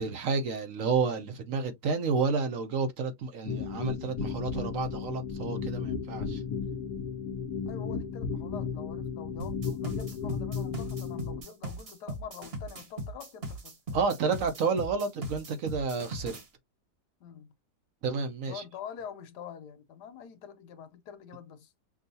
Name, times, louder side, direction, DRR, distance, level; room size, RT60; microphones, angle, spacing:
voice 1, 0.0-6.4 13.9-16.4 18.0-18.6, right 5 dB, 60° right, 1.0 m, -30 dB
sound 1, 3.5-11.4, left 6 dB, 70° left, 1.2 m, -34 dB
voice 2, 7.7-13.8 17.2-17.5 18.4-21.7, left 7 dB, 90° left, 1.3 m, -45 dB
sound 2, 9.4-16.5, right 1 dB, 40° right, 1.1 m, -39 dB
6.1 x 2.3 x 2.6 m
omnidirectional pair, 1.7 m